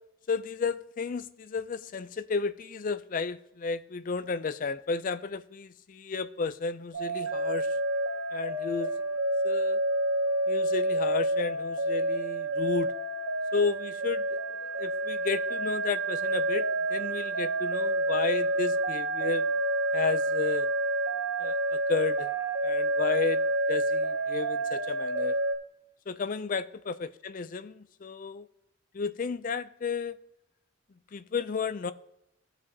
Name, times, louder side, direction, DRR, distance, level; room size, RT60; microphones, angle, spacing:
voice 1, 0.3-7.7 8.3-8.9 9.4-9.8 10.5-12.9 13.5-14.2 14.8-19.5 19.9-20.7 21.4-22.3 22.6-23.4 23.7-25.4 26.1-28.5 28.9-30.2 31.1-31.9, left 5 dB, 40° left, 0.4 m, -32 dB
sound 1, 6.9-25.6, right 1 dB, 60° right, 0.8 m, -28 dB
16.0 x 5.3 x 2.8 m
head